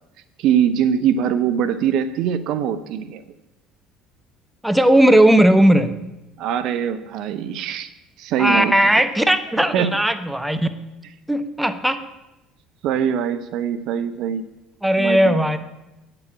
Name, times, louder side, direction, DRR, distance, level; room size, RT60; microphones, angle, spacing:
voice 1, 0.4-3.2 6.4-7.9 8.2-8.9 9.6-9.9 12.8-14.6 15.0-15.4, right 8 dB, 60° right, 12 dB, 0.5 m, -22 dB
voice 2, 4.6-6.0 8.4-10.7 11.3-12.0 14.8-15.6, right 1 dB, 5° right, 9 dB, 0.9 m, -17 dB
8.6 x 6.8 x 8.3 m, 0.98 s
hypercardioid pair, 60°, 0 cm